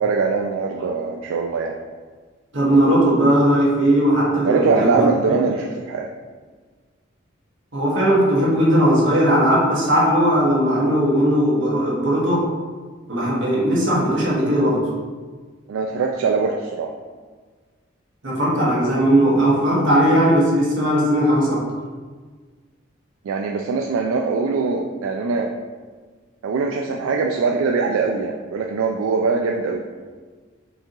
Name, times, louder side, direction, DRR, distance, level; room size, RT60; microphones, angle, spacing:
voice 1, 0.0-1.7 4.4-6.1 15.7-16.9 23.2-25.5 26.4-29.8, right 4 dB, 85° right, 1 dB, 0.3 m, -22 dB
voice 2, 2.5-5.4 7.7-12.4 13.1-14.8 18.2-21.6, equal, 65° right, -6 dB, 1.4 m, -18 dB
4.7 x 2.9 x 3.8 m, 1.5 s
head